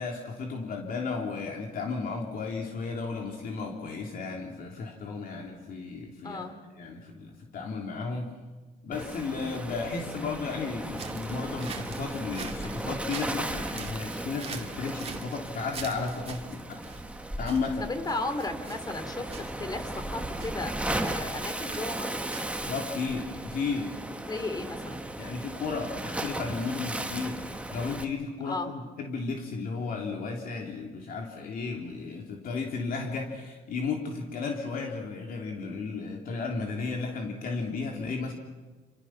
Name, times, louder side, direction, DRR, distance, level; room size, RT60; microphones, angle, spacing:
voice 1, 0.0-6.5 6.8-8.3 8.8-16.8 17.4-17.9 22.7-23.9 25.2-38.3, left 4 dB, 55° left, 1 dB, 3.1 m, -34 dB
voice 2, 6.2-6.6 17.8-22.1 24.3-25.0 28.4-28.7, left 2 dB, 25° left, 8 dB, 3.1 m, -35 dB
Waves surf, 8.9-28.0, right 1 dB, 5° right, 1.6 m, -36 dB
sound 1, 11.0-22.9, right 6 dB, 35° right, 2.4 m, -45 dB
27.5 x 26.5 x 6.0 m, 1.3 s
cardioid pair, 110°, 17 cm